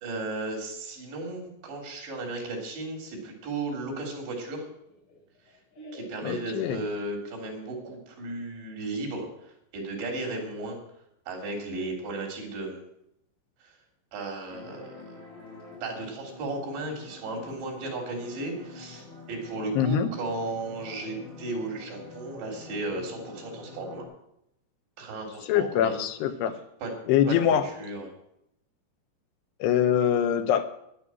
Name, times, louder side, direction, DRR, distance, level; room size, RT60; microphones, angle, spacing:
voice 1, 0.0-4.7 5.9-10.8 11.3-12.9 13.6-13.7 14.1-15.2 15.8-24.0 25.0-26.0 26.8-26.9 27.3-28.1, right 2 dB, 90° right, 1 dB, 5.6 m, -35 dB
Laughter, 3.8-7.5, equal, 50° left, 6.7 m, -50 dB
voice 2, 6.2-6.8 19.7-20.1 25.5-26.6 27.1-27.7 29.6-30.6, left 9 dB, 80° left, 9 dB, 2.8 m, -24 dB
sound 1, 14.5-24.0, left 3 dB, 25° right, 7.2 m, -46 dB
12.5 x 11.0 x 6.0 m, 0.77 s
omnidirectional pair, 4.9 m